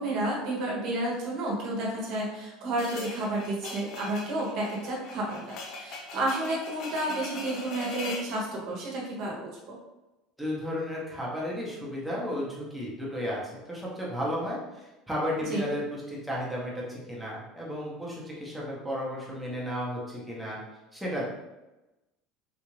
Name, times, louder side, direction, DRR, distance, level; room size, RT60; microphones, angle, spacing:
voice 1, 0.0-9.8 15.5-15.6, right 1 dB, 45° right, -3 dB, 0.8 m, -31 dB
sound 1, 2.8-8.3, left 3 dB, 45° left, 0.5 m, -41 dB
voice 2, 10.4-20.6 20.9-21.2, equal, ahead, -6 dB, 0.7 m, -33 dB
3.8 x 2.4 x 3.1 m, 1.0 s
cardioid pair, 175°, 0 cm